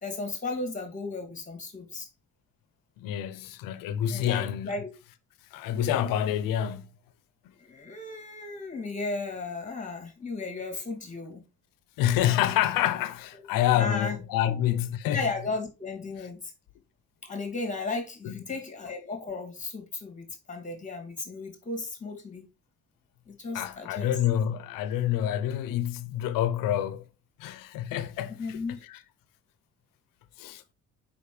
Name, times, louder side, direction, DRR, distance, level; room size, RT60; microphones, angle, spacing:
voice 1, 0.0-2.1 4.1-4.9 7.6-11.4 13.3-13.4 13.8-14.1 14.5-14.6 15.1-16.5 17.2-22.4 23.3-24.1 28.4-28.8, left 3 dB, 20° left, 2.7 m, -35 dB
voice 2, 3.0-4.7 5.5-6.9 12.0-15.2 18.2-18.4 23.5-27.0 27.4-28.6 28.9-29.0 30.4-30.6, left 11 dB, 80° left, 0.8 m, -27 dB
5.2 x 5.1 x 5.0 m
cardioid pair, 105°, 33 cm